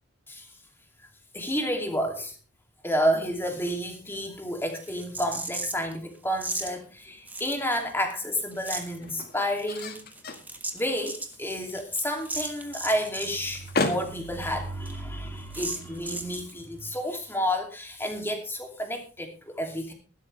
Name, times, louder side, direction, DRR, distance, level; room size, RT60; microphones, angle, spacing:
voice 1, 1.3-2.4 2.8-10.0 10.7-19.9, equal, 10° left, 3 dB, 2.7 m, -30 dB
sound 1, 4.8-5.9 6.4-6.7 7.3-8.1 8.4-9.0 9.6-13.4 13.7-13.8 14.0-14.1 14.4-14.5 14.9-15.0 15.5-16.5, right 2 dB, 10° right, 1.4 m, -36 dB
sound 2, 6.8-17.2, left 2 dB, 50° left, 1.9 m, -38 dB
15.5 x 12.0 x 3.4 m, 0.34 s
head